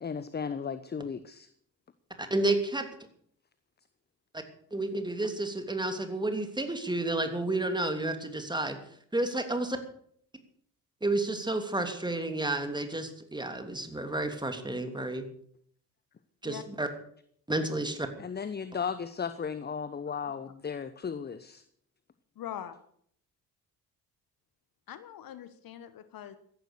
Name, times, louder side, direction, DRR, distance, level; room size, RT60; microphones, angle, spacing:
voice 1, 0.0-1.5 18.2-21.6, left 6 dB, 20° left, 14 dB, 0.9 m, -35 dB
voice 2, 2.2-2.9 4.3-4.4 4.7-8.8 9.1-9.8 11.0-15.2 16.4-16.9 17.5-18.1, right 2 dB, 10° right, 7 dB, 3.0 m, -31 dB
voice 3, 22.3-22.7 24.9-26.4, left 10 dB, 50° left, 13 dB, 1.4 m, -42 dB
16.0 x 11.5 x 6.7 m, 0.64 s
figure-of-eight pair, 50°, 46 cm